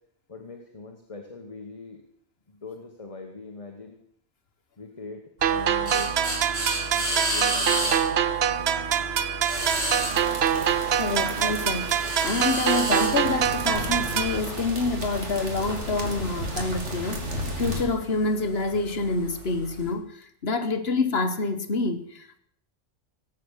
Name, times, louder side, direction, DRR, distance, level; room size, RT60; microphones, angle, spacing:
voice 1, 0.3-2.0 2.5-4.0 4.8-6.2 6.9-8.0, left 3 dB, 30° left, 1.5 m, -41 dB
sound 1, 5.4-19.9, equal, 40° right, 4.2 m, -34 dB
sound 2, 5.4-14.4, right 9 dB, 65° right, 0.9 m, -25 dB
sound 3, 9.5-17.8, right 1 dB, 85° right, 2.5 m, -34 dB
voice 2, 10.9-12.0 12.2-22.4, left 3 dB, 60° left, 1.4 m, -27 dB
18.0 x 8.7 x 6.5 m
omnidirectional pair, 1.2 m